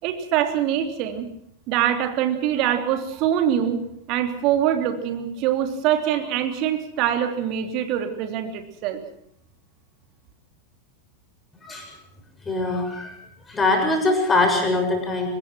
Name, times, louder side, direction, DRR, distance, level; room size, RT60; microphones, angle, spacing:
voice 1, 0.0-1.3 1.7-3.8 4.1-9.0, right 10 dB, 40° right, 6 dB, 3.2 m, -24 dB
voice 2, 12.5-13.2 13.5-15.3, left 2 dB, 15° left, 3 dB, 7.2 m, -22 dB
24.5 x 20.0 x 6.2 m, 0.70 s
figure-of-eight pair, 90°, 0 cm